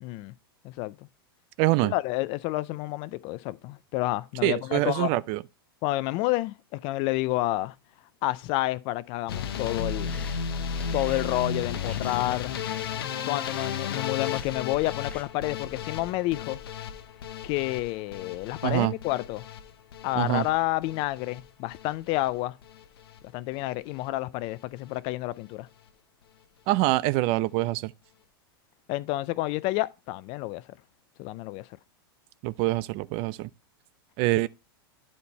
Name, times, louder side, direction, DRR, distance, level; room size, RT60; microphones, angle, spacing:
voice 1, 0.0-0.3 0.6-1.0 1.8-5.1 5.8-7.7 8.2-10.2 10.9-12.5 13.3-16.6 17.4-19.4 20.0-22.5 23.3-25.7 28.9-30.6 31.2-31.7, left 18 dB, 45° left, 0.4 m, -29 dB
voice 2, 1.6-1.9 4.4-5.4 18.6-18.9 20.2-20.4 26.7-27.9 32.4-33.5 34.2-34.5, right 18 dB, 50° right, 0.4 m, -25 dB
sound 1, 9.3-21.4 21.7-22.3 22.6-23.2 23.5-23.7 24.1-24.2 24.4-24.5, left 7 dB, 80° left, 0.9 m, -34 dB
sound 2, 9.9-15.2, left 3 dB, 10° left, 0.8 m, -49 dB
10.0 x 4.2 x 4.1 m
hypercardioid pair, 110°, 12 cm